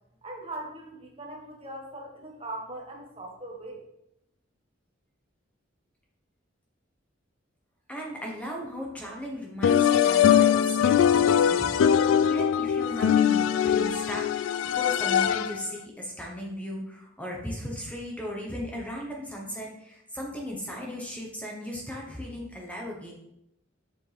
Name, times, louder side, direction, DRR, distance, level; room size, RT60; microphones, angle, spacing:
voice 1, 0.2-3.8, right 2 dB, 30° right, 1 dB, 1.4 m, -40 dB
voice 2, 7.9-23.1, equal, 5° left, -1 dB, 1.0 m, -37 dB
sound 1, 9.6-15.7, left 8 dB, 85° left, 0.3 m, -22 dB
6.9 x 6.9 x 3.4 m, 0.81 s
head